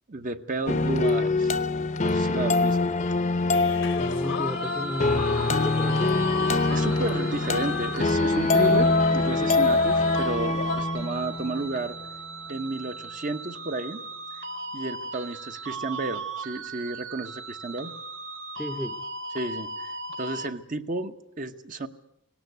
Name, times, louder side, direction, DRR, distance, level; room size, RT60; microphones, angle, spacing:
voice 1, 0.1-1.5 2.0-2.9 6.4-12.0 12.5-14.0 14.7-17.9 19.3-21.9, right 2 dB, 40° right, 8 dB, 1.0 m, -32 dB
sound 1, 0.7-11.7, left 3 dB, 40° left, 0.8 m, -24 dB
sound 2, 3.5-10.8, left 5 dB, 70° left, 1.2 m, -34 dB
voice 2, 4.0-6.1 18.6-19.0, equal, 5° right, 8 dB, 0.8 m, -34 dB
sound 3, 4.6-20.5, right 3 dB, 65° right, 1.7 m, -38 dB
18.5 x 18.0 x 9.3 m, 0.75 s
head